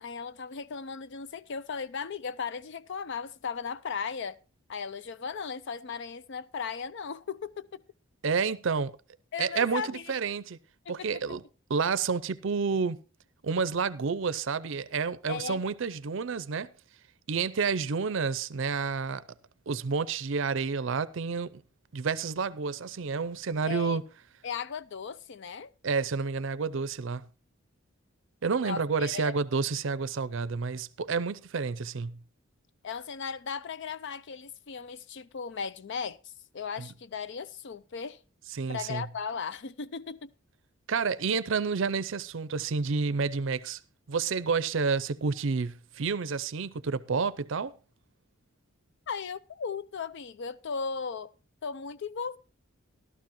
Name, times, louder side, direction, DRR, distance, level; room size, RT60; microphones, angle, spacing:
voice 1, 0.0-4.4 4.7-7.8 9.3-10.2 10.9-11.1 15.3-15.6 23.7-24.0 24.4-25.7 28.6-29.3 32.8-36.2 36.5-38.2 38.7-40.3 49.1-51.3 51.6-52.4, left 6 dB, 55° left, 0.5 m, -36 dB
voice 2, 8.2-8.9 9.4-10.6 10.9-11.4 11.7-13.0 13.4-16.7 17.3-19.2 19.7-21.6 21.9-24.0 25.8-27.2 28.4-32.2 36.8-36.9 38.5-39.1 40.9-43.8 44.1-47.8, right 5 dB, 60° right, 0.5 m, -29 dB
14.0 x 12.5 x 3.0 m
head